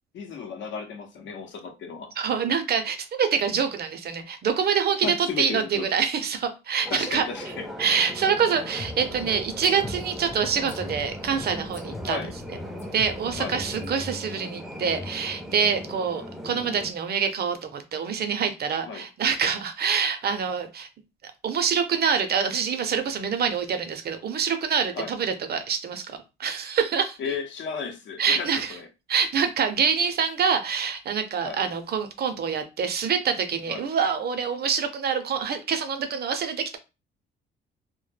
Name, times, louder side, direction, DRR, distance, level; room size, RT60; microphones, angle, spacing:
voice 1, 0.1-2.1 5.0-5.9 6.9-7.7 12.0-12.3 13.4-13.6 18.8-19.1 25.0-25.1 27.2-28.9 31.4-31.6 33.7-33.8, left 5 dB, 70° left, 0.7 m, -34 dB
voice 2, 2.2-7.2 7.8-12.2 12.9-20.9 21.2-26.0 26.4-27.2 28.2-28.8 29.1-36.8, right 6 dB, 55° right, 0.6 m, -26 dB
sound 1, 6.8-16.9, equal, ahead, 0.5 m, -38 dB
sound 2, 8.8-14.0, left 2 dB, 35° left, 0.8 m, -41 dB
2.1 x 2.1 x 3.2 m
cardioid pair, 90°, 20 cm